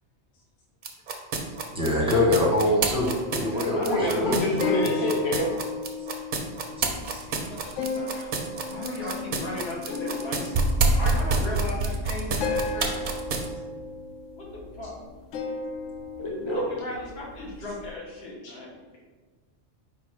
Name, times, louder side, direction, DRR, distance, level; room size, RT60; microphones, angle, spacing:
sound 1, 0.8-13.5, right 3 dB, 55° right, 0.6 m, -27 dB
voice 1, 1.7-4.4 4.7-4.9 7.1-7.4, left 1 dB, 5° right, -3 dB, 0.8 m, -24 dB
sound 2, 3.2-3.9 4.2-4.3 4.6-11.7 12.4-15.0 15.3-17.9, left 4 dB, 90° left, 0.9 m, -34 dB
voice 2, 3.3-4.2 7.1-10.4 10.9-13.1 14.3-15.0 16.5-18.7, left 1 dB, 60° left, -3 dB, 1.3 m, -37 dB
voice 3, 3.8-5.6 16.2-16.7 18.4-18.5, left 1 dB, 30° left, -4 dB, 0.7 m, -27 dB
4.6 x 2.4 x 4.7 m, 1.3 s
omnidirectional pair, 1.2 m